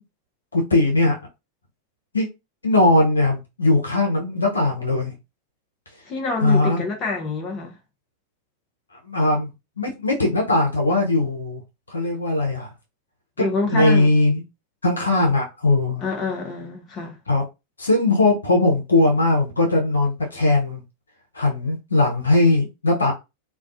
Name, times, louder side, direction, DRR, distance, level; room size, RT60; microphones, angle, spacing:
voice 1, 0.5-1.2 2.1-2.3 2.6-5.2 6.4-6.8 9.0-9.5 9.8-11.6 11.9-12.7 13.4-14.4 14.8-16.0 17.3-17.4 17.8-20.8 21.3-23.1, left 2 dB, 75° left, 0.6 m, -19 dB
voice 2, 6.1-7.7 13.4-14.1 16.0-17.2, left 3 dB, 30° left, 0.6 m, -26 dB
2.2 x 2.2 x 2.5 m
figure-of-eight pair, 90°, 0 cm